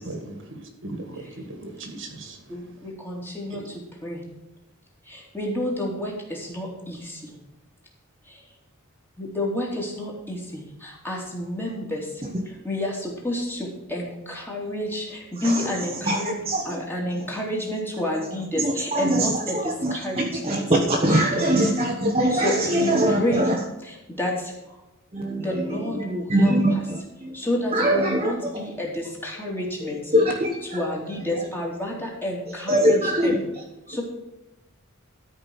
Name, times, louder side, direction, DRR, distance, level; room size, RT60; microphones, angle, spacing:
voice 1, 0.0-0.4 0.8-2.8 3.5-3.6, right 2 dB, 55° right, 5 dB, 1.9 m, -38 dB
voice 2, 3.0-3.6 4.0-4.2 5.3-6.1 6.5-7.0 9.2-10.6 11.0-12.0 12.6-13.6 13.9-15.1 15.3-16.3 16.7-19.6 19.9-20.6 21.1-21.5 22.3-22.9 23.2-23.5 24.2-24.3 25.4-26.6 27.3-30.0 30.7-33.4 33.9-34.0, left 1 dB, 10° left, -2 dB, 2.8 m, -29 dB
voice 3, 15.4-16.8 18.5-19.9 20.4-23.6 25.1-27.3 27.7-28.6 30.1-30.8 32.7-33.4 33.9-34.0, right 1 dB, 25° right, 0 dB, 1.2 m, -23 dB
13.0 x 5.4 x 7.2 m, 0.97 s
head